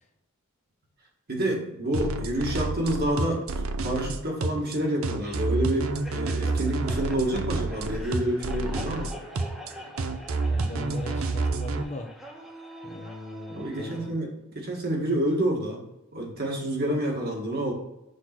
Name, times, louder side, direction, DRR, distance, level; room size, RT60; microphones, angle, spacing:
voice 1, 1.3-9.1 13.5-15.8 16.1-17.7, right 1 dB, 45° right, -1 dB, 1.7 m, -28 dB
sound 1, 1.9-11.8, right 3 dB, 70° right, 0.5 m, -29 dB
sound 2, 5.2-14.1, equal, ahead, 1.1 m, -44 dB
voice 2, 10.3-12.1 12.8-14.2, left 1 dB, 35° left, 4 dB, 0.7 m, -39 dB
6.5 x 3.9 x 6.0 m, 0.91 s
head